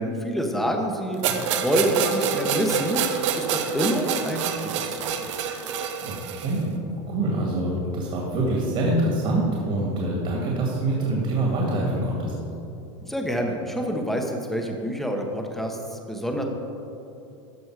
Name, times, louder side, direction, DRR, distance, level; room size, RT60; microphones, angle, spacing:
voice 1, 0.0-3.0 3.3-5.2 13.0-16.4, equal, ahead, 2 dB, 1.0 m, -27 dB
sound 1, 1.2-6.6, right 7 dB, 75° right, 0.9 m, -27 dB
voice 2, 6.0-6.8 7.1-12.3, right 1 dB, 40° right, -3 dB, 2.1 m, -25 dB
14.0 x 5.4 x 4.8 m, 2.8 s
supercardioid pair, 135°, 16 cm